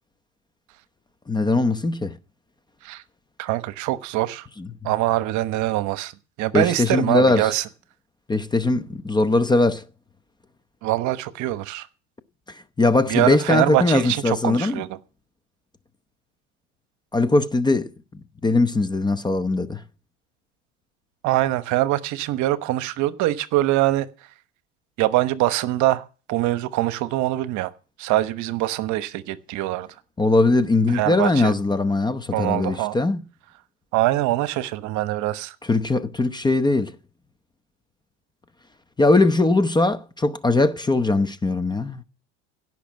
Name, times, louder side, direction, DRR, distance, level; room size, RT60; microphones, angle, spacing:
voice 1, 1.3-2.2 4.6-4.7 6.5-7.5 8.3-9.8 12.8-14.8 17.1-17.9 18.4-19.8 30.2-33.2 35.7-37.0 39.0-42.0, left 2 dB, 10° left, 0.8 m, -20 dB
voice 2, 3.4-4.5 4.8-6.1 6.4-7.7 10.8-11.9 13.1-15.0 21.2-24.1 25.0-27.7 28.0-29.9 30.9-31.5 32.3-33.0 33.9-35.5, right 16 dB, 50° right, 1.1 m, -23 dB
16.5 x 6.1 x 7.4 m
hypercardioid pair, 100°, 36 cm